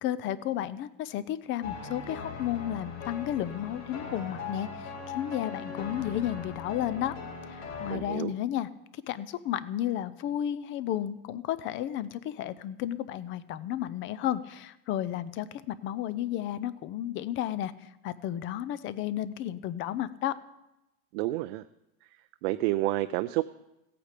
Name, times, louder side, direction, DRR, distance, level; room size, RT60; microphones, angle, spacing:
voice 1, 0.0-7.2 7.5-8.7 9.1-17.7 18.0-20.4, left 11 dB, 35° left, 16 dB, 0.6 m, -32 dB
sound 1, 1.6-7.9, left 5 dB, 90° left, 2.7 m, -40 dB
voice 2, 7.9-8.3 21.1-21.6 22.4-23.4, right 17 dB, 70° right, 10 dB, 0.5 m, -29 dB
15.5 x 8.6 x 5.1 m, 0.92 s
supercardioid pair, 140°, 33 cm